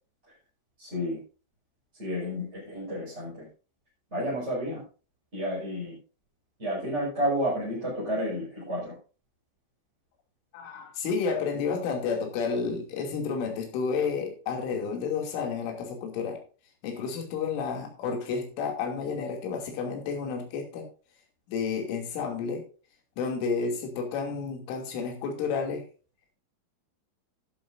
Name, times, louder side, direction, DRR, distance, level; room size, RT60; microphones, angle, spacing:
voice 1, 0.8-1.2 2.0-3.5 4.1-4.8 5.3-6.0 6.6-8.9, equal, 15° right, -7 dB, 5.1 m, -31 dB
voice 2, 10.5-16.4 16.8-20.9 21.5-22.6 23.2-25.8, left 5 dB, 75° left, 2 dB, 5.1 m, -31 dB
13.0 x 11.5 x 2.6 m, 0.36 s
omnidirectional pair, 5.8 m